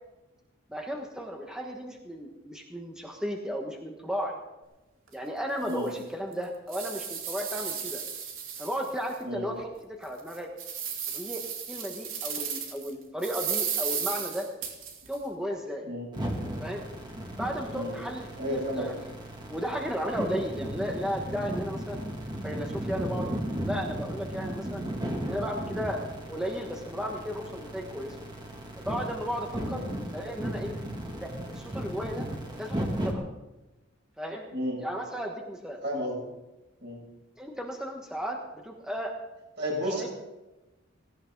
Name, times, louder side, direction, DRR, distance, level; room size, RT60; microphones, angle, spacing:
voice 1, 0.7-4.4 5.1-8.0 8.6-10.5 11.1-11.4 11.7-14.5 15.1-15.9 16.6-16.8 17.4-19.1 19.5-22.0 22.4-23.3 23.6-24.8 25.2-26.0 26.3-28.2 28.8-29.8 30.1-30.8 31.2-32.3 32.6-33.2 34.2-34.5 34.8-35.8 37.4-38.4 38.6-39.1 39.9-40.1, equal, 5° right, 0 dB, 1.4 m, -34 dB
sound 1, 5.1-5.2 5.7-5.8 6.3-9.1 9.6-9.7 10.2-12.9 13.2-15.2, right 7 dB, 80° right, 3.1 m, -34 dB
sound 2, 16.1-33.1, right 1 dB, 20° right, 2.3 m, -35 dB
voice 2, 18.4-18.9 29.7-29.8 34.5-34.8 35.8-36.2 36.8-37.0 39.6-40.1, equal, 55° right, -2 dB, 7.7 m, -32 dB
17.5 x 17.5 x 4.0 m, 1.0 s
head